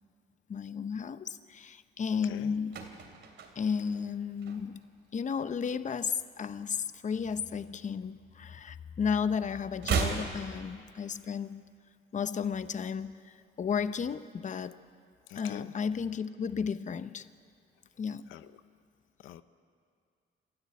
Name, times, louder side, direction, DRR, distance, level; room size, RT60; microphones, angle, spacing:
voice 1, 0.5-2.8 3.6-4.8 5.1-11.6 12.1-14.8 15.4-17.2 18.0-18.3, left 6 dB, 40° left, 13 dB, 0.8 m, -33 dB
sound 1, 2.4-5.0 5.3-5.6 5.9-7.3 7.6-9.0 9.2-11.3 11.6-11.7, right 6 dB, 70° right, 3.0 m, -37 dB
voice 2, 15.3-15.7 18.3-18.5 19.2-19.4, left 13 dB, 85° left, 12 dB, 0.7 m, -45 dB
28.0 x 13.5 x 8.5 m, 2.3 s
cardioid pair, 90°, 20 cm